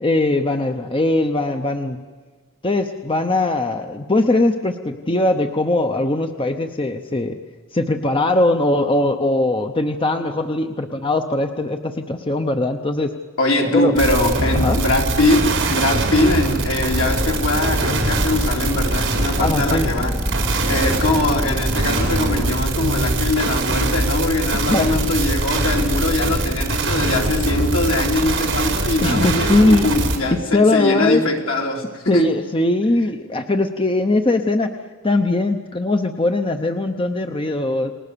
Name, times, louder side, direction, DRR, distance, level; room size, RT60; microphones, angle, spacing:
voice 1, 0.0-2.0 2.6-7.4 7.7-13.1 13.7-13.9 14.5-14.8 19.4-19.9 24.7-24.9 29.0-29.8 30.3-31.2 32.1-34.7 35.0-37.9, left 2 dB, 25° left, 6 dB, 0.8 m, -20 dB
voice 2, 13.4-20.2 20.7-32.3, left 2 dB, 65° left, 0 dB, 3.6 m, -21 dB
sound 1, 14.0-30.2, right 2 dB, 60° right, 3.9 m, -22 dB
sound 2, 15.1-22.5, equal, 5° left, 1.9 m, -30 dB
29.0 x 20.0 x 6.9 m, 1.4 s
head